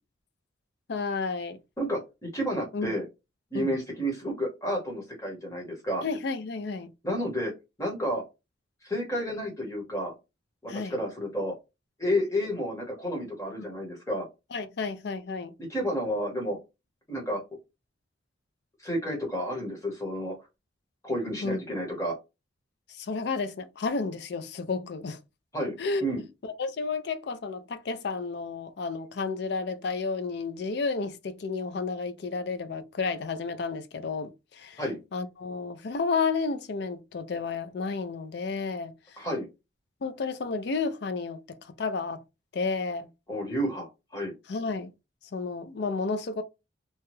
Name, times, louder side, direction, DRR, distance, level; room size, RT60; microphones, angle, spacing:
voice 1, 0.9-1.6 2.7-2.9 3.5-3.7 6.0-6.9 10.7-11.0 13.6-13.7 14.5-15.5 21.4-21.6 22.9-25.2 25.8-26.0 26.4-34.8 35.1-39.2 40.0-42.2 42.5-43.1 44.5-44.9 45.3-46.4, left 4 dB, 55° left, 0.4 m, -31 dB
voice 2, 1.8-3.0 3.5-6.0 7.0-7.5 7.8-8.2 8.8-10.1 10.6-11.5 12.0-14.3 15.6-16.6 17.1-17.4 18.8-20.3 21.0-22.1 25.5-25.7 26.0-26.2 34.8-35.0 39.2-39.5 43.3-44.3, equal, 15° left, 1.0 m, -31 dB
2.8 x 2.2 x 3.0 m
head